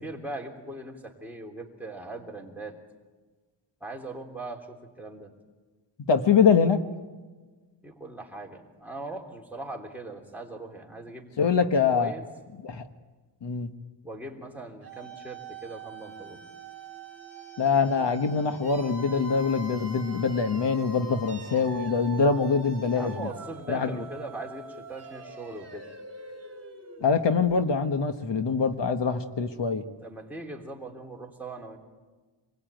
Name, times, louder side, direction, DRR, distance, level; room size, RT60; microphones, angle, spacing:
voice 1, 0.0-2.8 3.8-5.3 7.8-11.5 11.9-12.2 14.0-16.4 22.9-25.9 30.0-31.8, right 2 dB, 5° right, -1 dB, 3.4 m, -40 dB
voice 2, 6.1-6.8 11.4-12.1 12.6-12.8 13.4-13.7 17.6-23.3 23.7-23.9 27.0-29.8, left 5 dB, 65° left, 7 dB, 1.4 m, -24 dB
sound 1, 14.8-27.6, right 3 dB, 30° right, 3.5 m, -44 dB
27.5 x 22.0 x 9.1 m, 1.3 s
wide cardioid pair, 175°, 47 cm